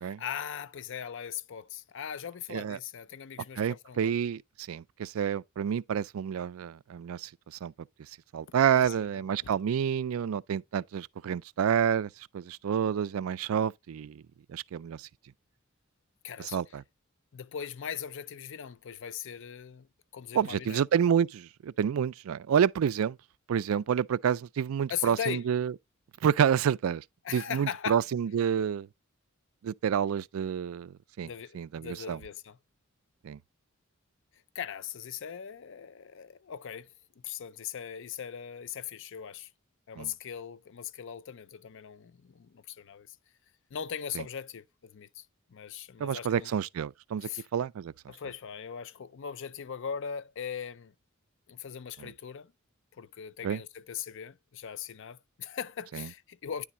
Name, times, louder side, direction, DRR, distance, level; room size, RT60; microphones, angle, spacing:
voice 1, 0.0-4.1 8.5-9.2 16.2-16.6 17.3-19.9 20.1-20.8 24.9-25.5 27.2-28.0 31.2-32.6 34.5-39.5 39.9-43.2 43.7-46.5 47.2-47.5 48.1-50.9 51.5-52.5 52.9-56.6, left 8 dB, 60° left, 0.5 m, -39 dB
voice 2, 3.6-7.7 8.3-14.2 14.5-15.1 16.5-16.8 20.3-23.2 23.5-25.7 26.2-27.0 27.3-28.9 29.6-32.2 33.2-33.4 40.0-40.1 44.2-44.3 46.0-47.9 52.0-52.1 53.4-53.6 55.9-56.1, right 8 dB, 80° right, 0.3 m, -29 dB
10.0 x 3.5 x 4.2 m
head